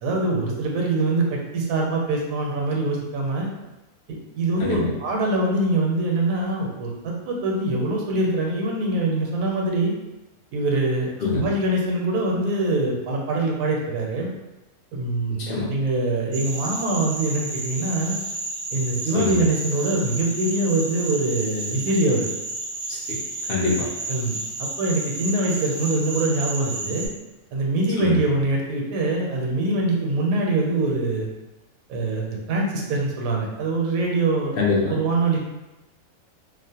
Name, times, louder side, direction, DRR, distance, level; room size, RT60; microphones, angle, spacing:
voice 1, 0.0-3.5 4.1-9.9 10.5-14.3 14.9-18.2 18.7-22.3 24.1-27.1 27.5-31.3 31.9-34.6 34.9-35.4, right 2 dB, 80° right, -1 dB, 1.0 m, -24 dB
voice 2, 4.6-4.9 11.2-11.4 15.5-15.7 19.1-19.4 22.9-23.2 23.5-23.9 28.0-28.2 34.6-35.0, left 4 dB, 65° left, -4 dB, 0.6 m, -24 dB
sound 1, 16.3-27.1, right 2 dB, 60° right, 0.6 m, -31 dB
2.4 x 2.0 x 2.7 m, 1.0 s
omnidirectional pair, 1.4 m